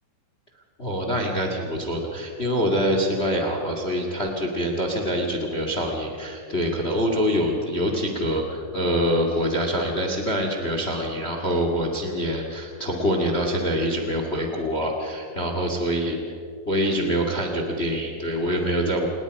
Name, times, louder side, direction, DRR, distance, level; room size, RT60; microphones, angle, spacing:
voice 1, 0.8-16.2 16.7-19.1, equal, 35° left, 3 dB, 1.0 m, -25 dB
28.0 x 19.5 x 5.3 m, 2.4 s
omnidirectional pair, 5.0 m